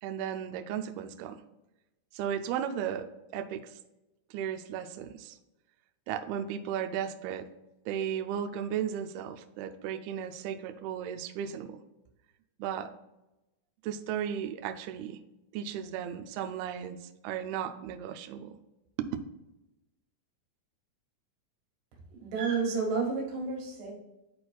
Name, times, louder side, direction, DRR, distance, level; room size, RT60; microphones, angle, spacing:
voice 1, 0.0-1.4 2.1-3.1 3.3-3.7 4.3-5.4 6.1-7.5 7.9-11.8 12.6-12.9 13.8-15.2 15.5-17.0 17.2-18.6 19.0-19.1, right 9 dB, 90° right, 7 dB, 2.2 m, -35 dB
voice 2, 22.2-23.9, right 4 dB, 70° right, -2 dB, 3.7 m, -30 dB
11.5 x 4.2 x 2.3 m, 0.97 s
omnidirectional pair, 5.0 m